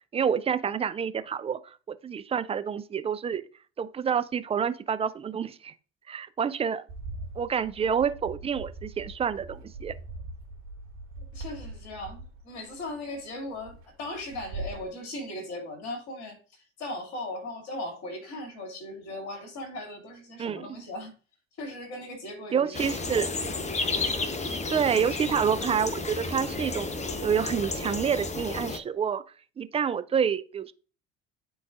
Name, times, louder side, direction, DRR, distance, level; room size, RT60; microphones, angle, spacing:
voice 1, 0.1-3.4 3.8-5.7 6.1-6.8 7.4-9.9 20.4-20.7 22.5-23.3 24.7-26.9 27.2-29.2 29.6-30.7, right 7 dB, 20° right, 0.5 m, -28 dB
Bird, 6.9-14.9, right 2 dB, 60° right, 2.5 m, -42 dB
voice 2, 11.3-21.1 21.6-23.2, left 1 dB, 50° left, 2.3 m, -38 dB
sound 1, 22.7-28.8, left 3 dB, 20° left, 0.9 m, -32 dB
11.5 x 3.9 x 2.4 m
figure-of-eight pair, 55°, 33 cm